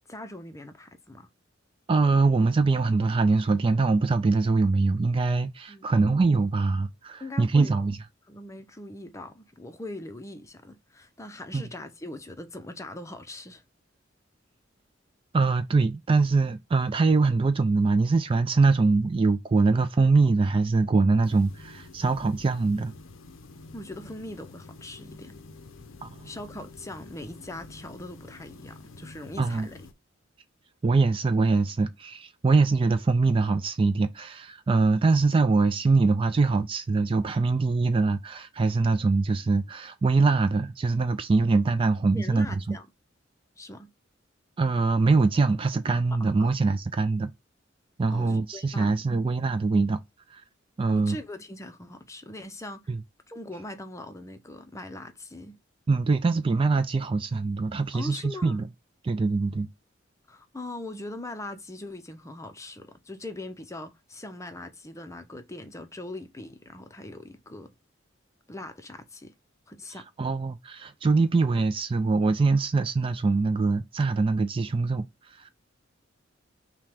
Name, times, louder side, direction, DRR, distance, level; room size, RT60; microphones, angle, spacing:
voice 1, 0.1-1.3 5.7-6.0 7.2-7.8 8.3-13.6 23.7-25.4 26.2-29.8 42.1-42.9 43.6-43.9 46.2-46.6 48.1-48.9 50.9-52.8 53.3-55.6 57.9-58.6 60.3-67.8 68.5-69.3 69.7-70.1, left 1 dB, 15° left, 0.6 m, -41 dB
voice 2, 1.9-8.0 11.5-11.7 15.3-22.9 26.0-26.3 29.4-29.7 30.8-42.8 44.6-47.3 48.0-50.0 50.3-50.4 50.8-51.2 52.9-53.0 55.9-58.7 59.0-59.7 70.2-75.5, right 3 dB, 25° right, 0.3 m, -23 dB
sound 1, 21.2-29.9, left 2 dB, 80° left, 0.6 m, -48 dB
5.9 x 2.2 x 3.4 m
head